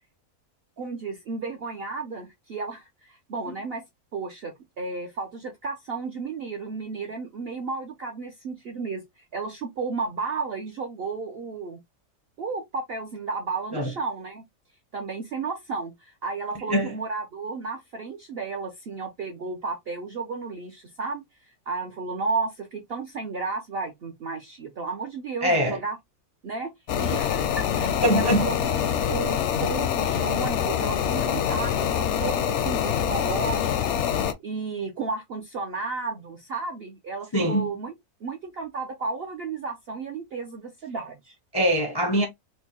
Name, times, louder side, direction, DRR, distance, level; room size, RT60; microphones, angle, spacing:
voice 1, 0.8-3.8 4.1-11.8 12.4-14.4 14.9-26.0 26.4-28.8 29.1-37.9 38.2-41.4, right 4 dB, 65° right, 0.6 m, -33 dB
voice 2, 25.4-25.8 28.0-28.5 37.3-37.7 41.5-42.3, equal, 40° left, 0.3 m, -23 dB
sound 1, 26.9-34.3, left 9 dB, 70° left, 0.7 m, -25 dB
4.5 x 2.1 x 2.8 m
omnidirectional pair, 1.6 m